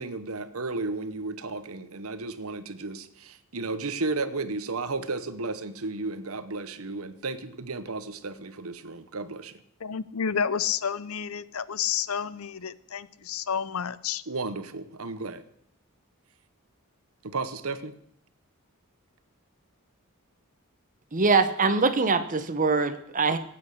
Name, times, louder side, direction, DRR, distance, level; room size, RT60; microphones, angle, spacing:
voice 1, 0.0-9.6 14.3-15.4 17.2-17.9, right 3 dB, 75° right, 12 dB, 1.1 m, -33 dB
voice 2, 9.8-14.2, left 7 dB, 70° left, 18 dB, 0.6 m, -30 dB
voice 3, 21.1-23.4, right 4 dB, 35° right, 10 dB, 1.2 m, -23 dB
17.0 x 8.9 x 6.6 m, 0.71 s
head